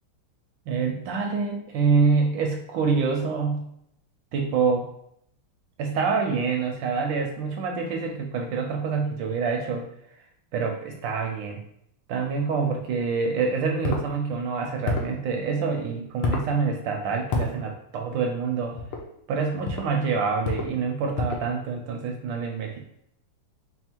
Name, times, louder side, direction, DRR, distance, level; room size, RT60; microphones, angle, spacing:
voice 1, 0.7-3.7 4.3-4.9 5.8-9.9 10.5-11.6 12.1-18.8 19.3-22.8, right 5 dB, 75° right, 2 dB, 1.1 m, -26 dB
sound 1, 13.8-14.1 14.8-15.2 16.2-16.5 17.3-17.5 18.8-19.0 19.6-19.9 20.4-20.7 21.2-21.5, left 3 dB, 85° left, 1.6 m, -28 dB
4.2 x 2.1 x 4.3 m, 0.72 s
omnidirectional pair, 2.3 m